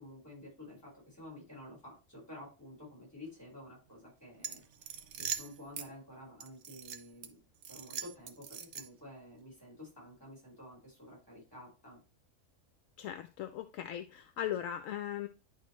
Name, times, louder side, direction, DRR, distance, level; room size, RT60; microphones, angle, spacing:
voice 1, 0.0-7.4 7.7-12.0, left 1 dB, 15° left, -2 dB, 4.6 m, -51 dB
sound 1, 4.4-5.9 6.4-7.3 7.6-9.1, right 8 dB, 60° right, 0.9 m, -41 dB
voice 2, 13.0-15.3, left 11 dB, 75° left, 9 dB, 0.9 m, -38 dB
10.5 x 4.1 x 3.1 m, 0.31 s
omnidirectional pair, 1.4 m